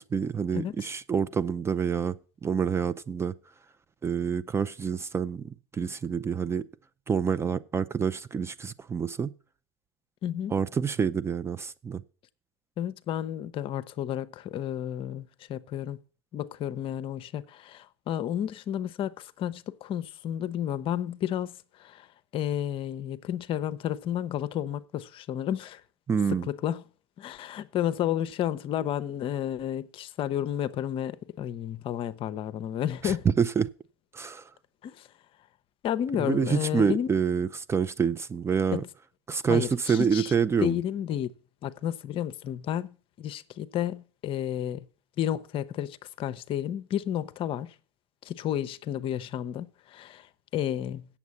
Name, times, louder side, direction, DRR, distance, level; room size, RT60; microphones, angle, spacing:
voice 1, 0.0-3.3 4.0-6.6 7.1-9.3 10.5-12.0 26.1-26.5 33.0-33.7 34.1-34.4 36.2-38.8 39.3-40.8, right 6 dB, 20° right, 0.4 m, -27 dB
voice 2, 0.5-0.9 10.2-10.5 12.8-16.0 16.3-22.1 22.3-25.8 26.3-26.8 27.2-33.3 34.8-35.1 35.8-37.1 38.7-38.9 39.5-40.3 40.6-41.3 41.6-44.8 45.2-47.7 48.2-50.3 50.5-51.1, left 10 dB, 40° left, 0.6 m, -31 dB
8.2 x 7.1 x 7.0 m
hypercardioid pair, 85°, 14 cm